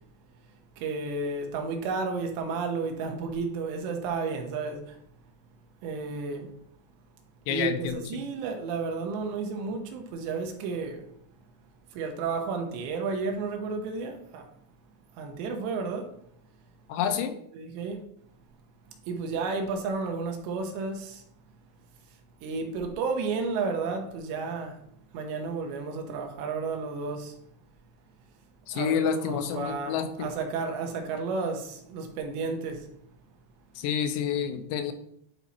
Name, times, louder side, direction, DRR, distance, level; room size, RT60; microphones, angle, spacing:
voice 1, 0.8-5.0 5.8-6.5 7.5-11.1 11.9-14.5 15.2-16.1 17.1-17.2 17.5-18.0 19.1-21.2 22.4-24.8 25.1-27.4 28.7-32.9, right 4 dB, 90° right, 3.2 m, -32 dB
voice 2, 7.5-8.2 16.9-17.4 28.7-30.3 33.8-34.9, left 7 dB, 85° left, 2.8 m, -29 dB
11.5 x 4.1 x 4.4 m
omnidirectional pair, 5.1 m